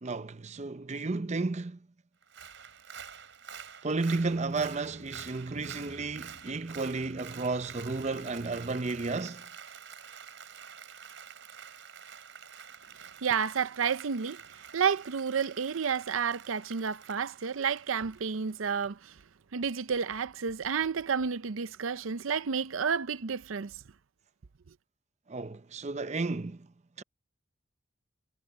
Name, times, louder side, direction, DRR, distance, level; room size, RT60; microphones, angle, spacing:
voice 1, 0.0-1.8 3.8-9.5 25.3-26.7 27.0-27.1, right 3 dB, 35° right, 0.6 m, -33 dB
Applause, 2.2-18.9 19.2-19.3, right 7 dB, 65° right, 5.4 m, -48 dB
sound 1, 4.2-9.3, equal, 80° left, 2.8 m, -55 dB
voice 2, 13.2-14.4 14.7-19.1 19.5-23.7, right 6 dB, 85° right, 0.6 m, -30 dB
head